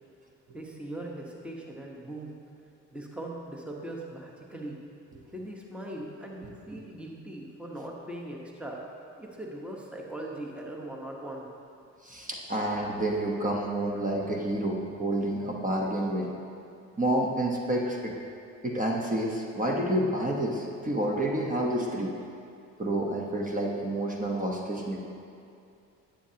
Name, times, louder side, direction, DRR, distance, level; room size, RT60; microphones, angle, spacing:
voice 1, 0.5-2.3 2.9-4.8 5.3-8.8 9.2-11.5, right 1 dB, 5° right, -1 dB, 1.1 m, -40 dB
voice 2, 12.0-16.3 17.0-18.1 18.6-22.1 22.8-25.1, right 1 dB, 25° right, -1 dB, 1.0 m, -29 dB
11.0 x 8.5 x 2.9 m, 2.5 s
cardioid pair, 90°, 30 cm